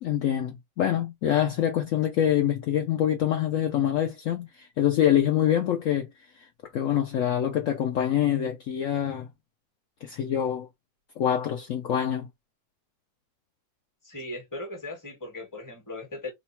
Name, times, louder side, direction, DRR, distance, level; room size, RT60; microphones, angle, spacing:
voice 1, 0.0-6.1 6.7-9.3 10.0-10.7 11.2-12.3, left 10 dB, 75° left, 0.7 m, -25 dB
voice 2, 14.0-16.3, left 2 dB, 15° left, 0.9 m, -38 dB
3.0 x 2.3 x 4.2 m
omnidirectional pair, 2.0 m